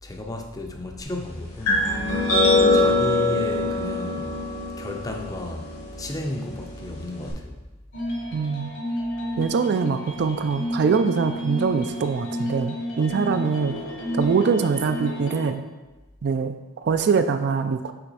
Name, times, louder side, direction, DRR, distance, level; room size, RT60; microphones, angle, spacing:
voice 1, 0.0-1.9 2.2-4.3 4.8-5.7 6.0-7.6, left 1 dB, 15° left, 3 dB, 0.5 m, -33 dB
sound 1, 1.7-7.3, left 2 dB, 75° left, 1.9 m, -23 dB
sound 2, 7.9-15.5, equal, 60° left, 1.4 m, -31 dB
voice 2, 8.3-8.7 9.4-13.7 14.1-15.6 16.2-17.9, right 5 dB, 50° right, 9 dB, 0.3 m, -23 dB
5.8 x 3.4 x 5.4 m, 1.2 s
head